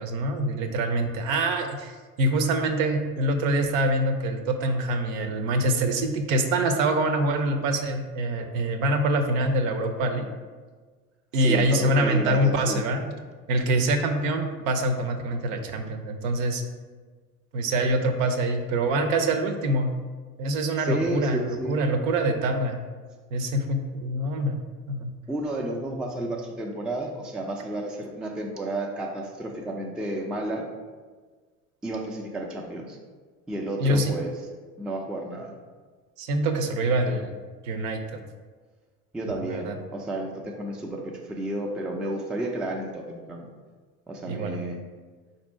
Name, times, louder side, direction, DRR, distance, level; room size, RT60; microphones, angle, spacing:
voice 1, 0.0-10.3 11.3-13.1 13.5-16.6 17.5-19.9 20.4-22.8 23.3-24.6 24.9-25.1 33.8-34.1 36.2-37.3 37.6-38.2 39.5-39.8 44.3-44.7, right 1 dB, 65° right, 6 dB, 0.7 m, -25 dB
voice 2, 11.4-12.8 20.8-21.8 25.3-30.6 31.8-33.0 33.5-34.3 34.8-35.5 39.1-43.5 44.1-44.8, right 1 dB, ahead, 0 dB, 0.3 m, -31 dB
4.2 x 2.7 x 4.2 m, 1.4 s
figure-of-eight pair, 65°, 44 cm